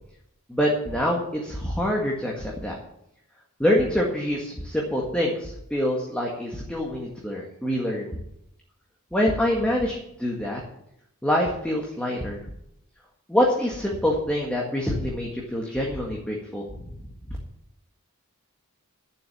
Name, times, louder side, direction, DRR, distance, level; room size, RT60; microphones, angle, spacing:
voice 1, 0.5-2.8 3.6-8.2 9.1-10.6 11.2-12.4 13.3-16.9 17.3-17.4, left 1 dB, 5° left, -2 dB, 1.8 m, -25 dB
11.0 x 7.3 x 8.8 m, 0.79 s
head